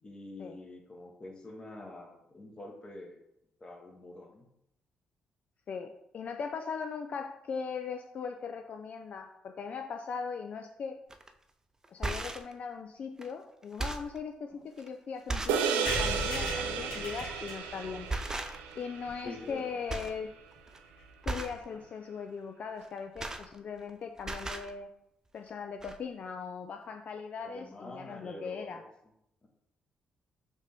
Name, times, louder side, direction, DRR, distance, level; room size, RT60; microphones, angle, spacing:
voice 1, 0.0-3.2 3.6-4.5 14.5-14.6 16.9-17.2 19.2-20.1 21.7-21.8 27.4-28.9 29.4-29.5, left 1 dB, 35° left, 2 dB, 1.0 m, -46 dB
voice 2, 5.7-11.0 11.9-18.1 18.8-20.3 21.3-24.9 25.3-28.8, left 6 dB, 55° left, 4 dB, 0.3 m, -39 dB
sound 1, 11.1-11.3 11.8-12.5 13.2-13.3 13.6-14.2 14.8-14.9 15.3-15.7 16.1-16.3 17.4-17.7 18.1-18.8 19.1-19.6 19.9-20.2 20.5-20.8 21.2-21.6 22.8-23.9 24.2-24.7 25.5-25.6 25.8-26.0, right 2 dB, 20° right, 0.5 m, -37 dB
sound 2, 15.5-20.1, right 7 dB, 85° right, 0.4 m, -34 dB
sound 3, 15.9-19.5 20.0-20.1 20.3-20.4 20.6-20.7 20.9-21.1, left 2 dB, 80° left, 1.4 m, -39 dB
5.1 x 2.6 x 3.4 m, 0.82 s
hypercardioid pair, 50°, 3 cm